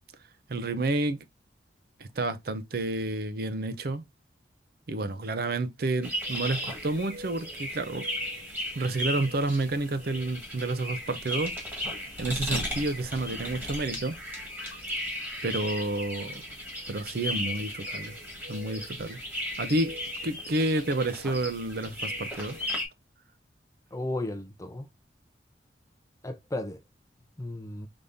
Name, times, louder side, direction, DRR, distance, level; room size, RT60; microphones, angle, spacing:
voice 1, 0.5-1.2 2.0-4.1 4.9-8.1 8.7-11.5 12.2-14.2 15.4-16.4 16.9-18.1 18.5-19.2 19.6-20.0 20.2-22.6, right 2 dB, 60° right, 0.6 m, -30 dB
sound 1, 6.0-22.8, left 1 dB, 10° right, 1.7 m, -36 dB
voice 2, 23.9-24.9 26.2-26.8 27.4-27.9, left 1 dB, 20° left, 0.6 m, -34 dB
5.2 x 3.5 x 2.6 m
head